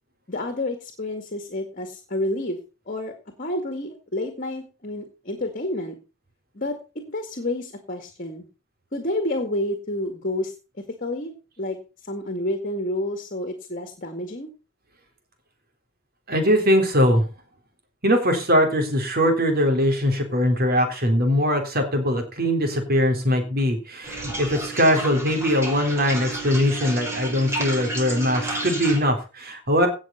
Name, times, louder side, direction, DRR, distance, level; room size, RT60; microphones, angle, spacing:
voice 1, 0.3-2.6 2.9-3.1 3.4-6.0 6.5-6.8 7.1-8.4 8.9-10.5 11.0-11.8 12.0-14.5, left 1 dB, 40° left, 7 dB, 2.1 m, -29 dB
voice 2, 16.3-17.3 18.0-29.9, equal, 50° right, 5 dB, 3.7 m, -21 dB
sound 1, 24.0-29.0, right 2 dB, 15° right, 5.3 m, -31 dB
17.5 x 6.3 x 5.7 m, 0.34 s
head